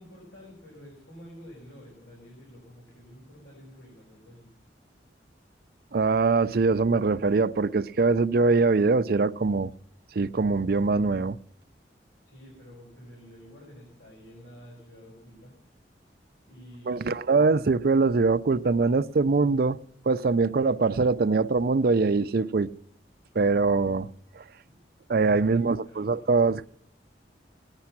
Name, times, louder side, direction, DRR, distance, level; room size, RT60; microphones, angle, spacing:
voice 1, 0.0-4.5 12.2-15.5 16.4-17.3 24.6-24.8 25.2-26.2, equal, 85° left, 5.8 m, -49 dB
voice 2, 5.9-9.7 10.2-11.4 16.9-19.8 20.1-22.7 23.3-24.1 24.4-24.5 25.1-26.7, right 4 dB, 55° right, 0.5 m, -23 dB
17.5 x 10.5 x 5.9 m
head